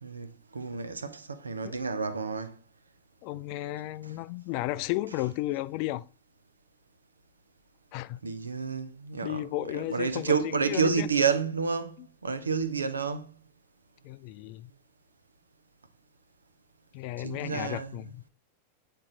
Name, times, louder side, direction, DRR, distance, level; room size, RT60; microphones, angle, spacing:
voice 1, 0.0-2.5 8.2-9.5 9.7-12.0 12.2-13.3 17.2-18.1, right 5 dB, 75° right, 0.7 m, -30 dB
voice 2, 3.2-6.0 7.9-8.2 9.2-11.1 14.0-14.7 16.9-18.2, left 16 dB, 45° left, 0.3 m, -34 dB
8.5 x 4.5 x 3.8 m
figure-of-eight pair, 90°, 0 cm